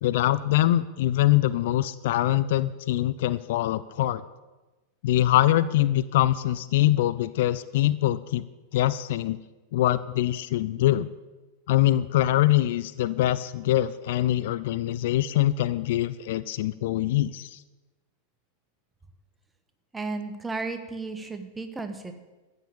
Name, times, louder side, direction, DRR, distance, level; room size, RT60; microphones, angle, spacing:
voice 1, 0.0-4.2 5.0-8.4 8.7-9.4 9.7-11.1 11.7-17.6, left 14 dB, 55° left, 16 dB, 0.4 m, -23 dB
voice 2, 19.9-22.1, right 3 dB, 10° right, 7 dB, 1.3 m, -34 dB
13.5 x 6.7 x 8.6 m, 1.2 s
figure-of-eight pair, 90°, 0 cm